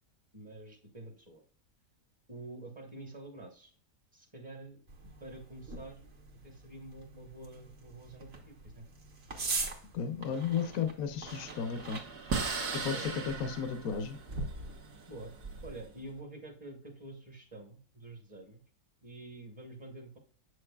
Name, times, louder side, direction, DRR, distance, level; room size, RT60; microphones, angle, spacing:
voice 1, 0.3-1.4 2.3-3.7 4.1-4.8 5.2-6.1 6.4-8.9 12.9-13.1 15.1-15.3 15.6-18.6 19.0-20.2, right 2 dB, 20° right, 2 dB, 0.9 m, -48 dB
sound 1, 4.9-15.8, right 3 dB, 45° right, 1.3 m, -43 dB
voice 2, 9.9-12.0 12.8-14.2, left 7 dB, 65° left, 8 dB, 1.1 m, -34 dB
sound 2, 11.3-15.9, right 4 dB, 85° right, 1.8 m, -38 dB
7.4 x 6.4 x 2.3 m, 0.41 s
omnidirectional pair, 1.6 m